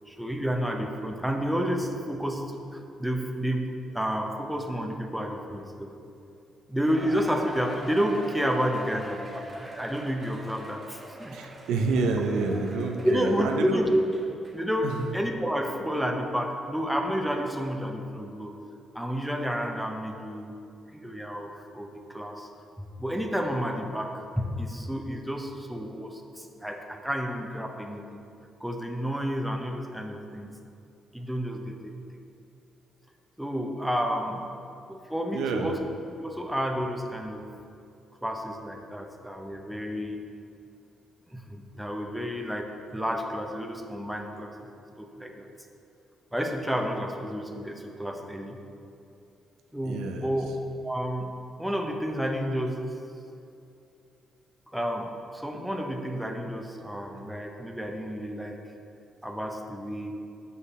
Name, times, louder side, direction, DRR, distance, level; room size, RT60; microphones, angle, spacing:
voice 1, 0.1-5.9 6.7-11.4 13.0-14.1 14.5-18.5 18.9-20.5 20.9-22.5 23.0-28.2 28.6-30.5 31.1-32.2 33.4-34.5 34.9-35.8 36.2-37.5 38.2-40.2 41.3-44.7 45.0-45.5 46.3-48.6 49.7-50.5 50.8-51.3 51.6-52.9 54.7-58.6 59.2-60.1, equal, 5° right, 3 dB, 0.7 m, -30 dB
Cheering, 6.8-14.6 15.0-15.1 15.7-15.8, right 1 dB, 25° right, 1.1 m, -43 dB
voice 2, 11.3-13.8 14.8-15.1 35.3-35.8 49.8-50.3, right 3 dB, 85° right, 3 dB, 0.6 m, -28 dB
6.4 x 5.6 x 4.2 m, 2.7 s
cardioid pair, 90°, 0 cm